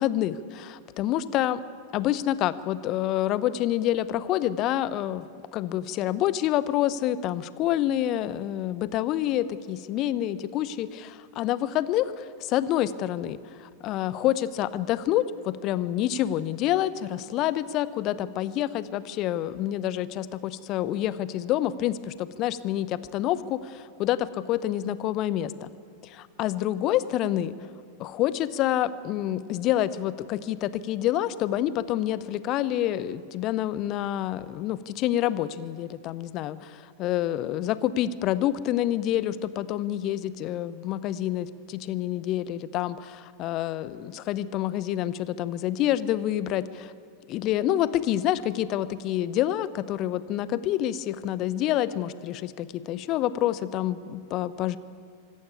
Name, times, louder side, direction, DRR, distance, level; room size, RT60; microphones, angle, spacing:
voice 1, 0.0-1.6 1.9-5.2 5.5-25.7 26.0-27.5 28.0-46.9 47.3-54.8, left 12 dB, 40° left, 16 dB, 0.8 m, -27 dB
25.0 x 14.0 x 8.5 m, 2.2 s
figure-of-eight pair, 90°, 0 cm